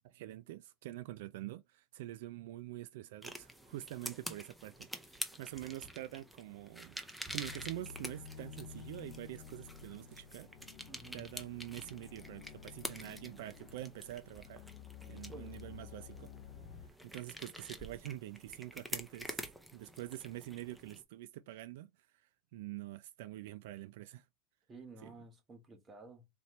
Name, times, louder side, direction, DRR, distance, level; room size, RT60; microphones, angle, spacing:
voice 1, 0.0-7.0 7.3-10.5 11.1-14.6 15.1-16.3 17.0-19.5 19.7-21.9 22.5-24.3 25.0-25.2, right 15 dB, 70° right, 0.3 m, -46 dB
sound 1, 3.2-21.0, equal, ahead, 0.7 m, -48 dB
sound 2, 7.4-16.9, left 8 dB, 55° left, 0.5 m, -52 dB
voice 2, 10.9-11.3 15.0-15.5 24.7-26.3, right 3 dB, 20° right, 1.2 m, -53 dB
4.2 x 2.9 x 3.2 m
supercardioid pair, 145°, 0 cm